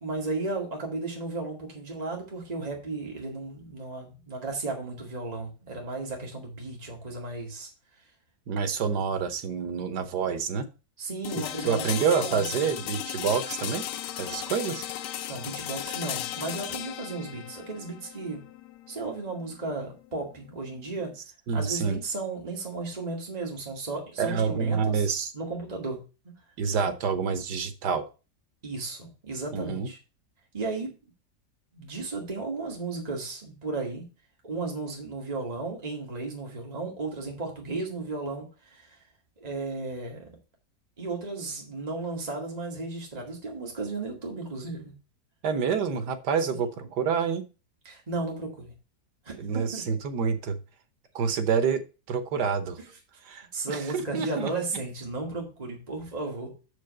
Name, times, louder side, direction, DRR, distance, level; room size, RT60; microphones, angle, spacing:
voice 1, 0.0-7.7 11.0-11.9 12.2-12.7 15.3-18.4 18.9-21.1 21.5-25.1 25.3-26.0 26.2-26.3 28.6-30.0 30.5-31.0 31.7-34.1 34.4-39.0 39.4-40.3 41.0-44.9 46.4-46.7 47.8-48.7 49.2-49.9 53.5-56.5, right 3 dB, 25° right, -1 dB, 2.2 m, -34 dB
voice 2, 8.5-10.7 11.6-13.8 14.2-14.9 21.5-22.0 24.2-25.3 26.6-28.0 29.5-29.9 45.4-47.5 49.4-50.6 51.1-51.8 52.1-52.8 53.2-54.5, right 6 dB, 85° right, 10 dB, 1.6 m, -27 dB
sound 1, 11.2-21.1, left 11 dB, 90° left, 1.3 m, -36 dB
6.6 x 5.2 x 6.5 m, 0.32 s
omnidirectional pair, 1.7 m